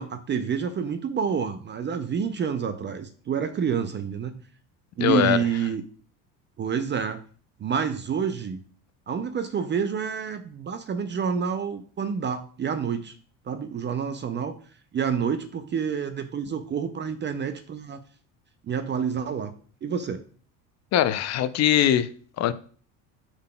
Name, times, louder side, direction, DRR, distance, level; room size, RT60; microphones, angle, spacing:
voice 1, 0.0-4.4 5.0-5.8 6.6-7.2 7.6-8.6 9.1-13.1 13.5-14.5 14.9-18.0 18.6-19.5 19.8-20.2, right 7 dB, 30° right, 0.5 m, -28 dB
voice 2, 5.0-5.4 20.9-22.1 22.4-22.5, left 11 dB, 45° left, 0.5 m, -21 dB
11.0 x 3.8 x 2.2 m
supercardioid pair, 90°, 39 cm